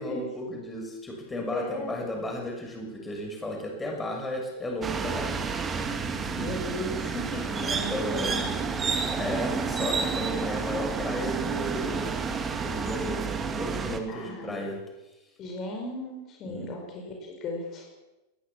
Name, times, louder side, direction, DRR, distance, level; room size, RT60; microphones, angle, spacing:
voice 1, 0.0-5.4 6.2-6.5 7.5-8.6 9.1-12.1 12.6-14.8 16.4-16.7, left 1 dB, 10° left, 2 dB, 6.3 m, -34 dB
voice 2, 1.5-1.9 6.3-8.5 14.1-14.6 15.4-17.9, left 1 dB, 30° left, 2 dB, 5.4 m, -36 dB
sound 1, 4.8-14.0, right 5 dB, 20° right, 2.3 m, -30 dB
21.0 x 18.0 x 7.3 m, 1.0 s
figure-of-eight pair, 90°, 0 cm